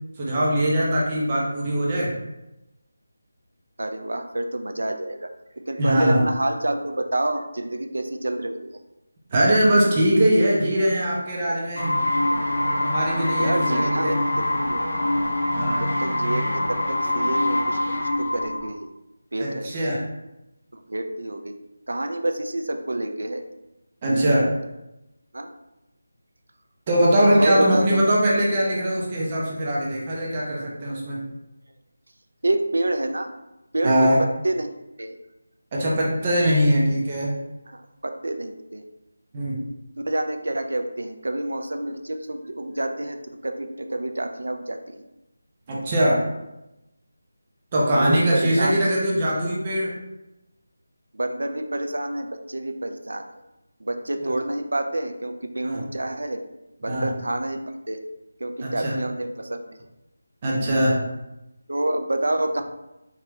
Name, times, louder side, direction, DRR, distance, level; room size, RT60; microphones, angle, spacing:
voice 1, 0.2-2.1 5.8-6.2 9.3-12.0 12.8-14.1 15.5-15.9 19.4-20.0 24.0-24.5 26.9-31.2 33.8-34.2 35.7-37.3 39.3-39.6 45.7-46.2 47.7-49.9 55.6-55.8 56.9-57.1 58.6-58.9 60.4-61.0, equal, 20° right, -5 dB, 0.6 m, -21 dB
voice 2, 3.8-5.3 5.7-8.7 13.4-14.9 15.8-18.9 19.3-19.7 20.7-21.5 21.9-23.4 25.3-25.5 27.4-27.8 32.4-33.3 33.7-34.7 35.0-35.2 37.7-38.8 40.0-45.0 47.9-48.8 51.1-53.3 53.8-56.4 56.8-57.6 57.9-58.0 58.4-59.8 61.7-62.6, right 1 dB, 90° right, 7 dB, 0.5 m, -28 dB
sound 1, 11.7-18.7, left 1 dB, 65° left, 1.0 m, -24 dB
4.6 x 2.4 x 3.1 m, 0.93 s
figure-of-eight pair, 175°, 0 cm